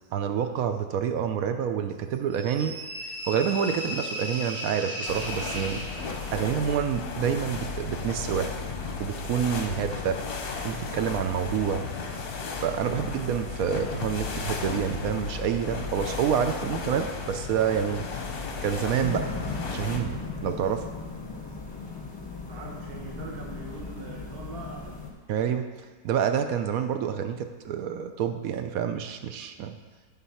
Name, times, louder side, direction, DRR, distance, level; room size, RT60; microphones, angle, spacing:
voice 1, 0.1-2.8 3.3-5.8 6.3-8.5 9.0-10.2 10.6-11.9 12.6-18.2 18.6-19.3 19.7-20.2 20.4-20.9 25.3-25.7 26.0-29.8, right 8 dB, 75° right, 8 dB, 1.0 m, -28 dB
sound 1, 2.3-6.5, equal, 10° right, 0.8 m, -36 dB
sound 2, 5.1-20.0, left 4 dB, 50° left, 0.8 m, -34 dB
sound 3, 19.0-25.1, left 3 dB, 20° left, 1.0 m, -37 dB
voice 2, 22.5-25.0, right 3 dB, 40° right, -1 dB, 1.3 m, -43 dB
9.4 x 4.0 x 5.6 m, 1.4 s
omnidirectional pair, 1.6 m